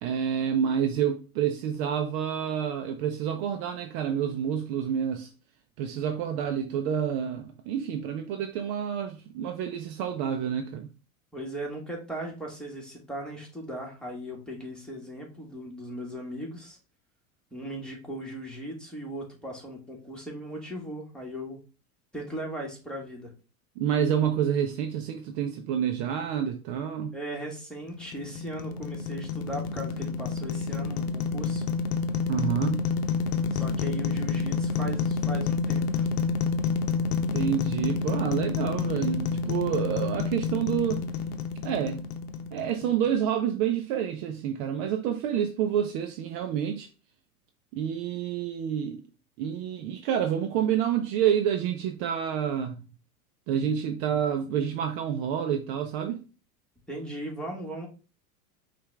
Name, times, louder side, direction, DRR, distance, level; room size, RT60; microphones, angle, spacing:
voice 1, 0.0-5.3 5.8-10.9 23.8-27.2 32.3-32.8 37.3-41.0 41.6-42.0 42.5-46.9 47.7-49.0 49.4-52.8 53.5-56.2, right 9 dB, 45° right, 0.6 m, -28 dB
voice 2, 11.3-16.8 17.5-21.6 22.1-23.3 27.1-31.6 33.5-36.1 56.9-57.9, right 1 dB, ahead, 1.6 m, -38 dB
sound 1, 27.9-43.1, left 5 dB, 75° left, 0.8 m, -29 dB
5.5 x 2.5 x 3.3 m
hypercardioid pair, 95°, 45 cm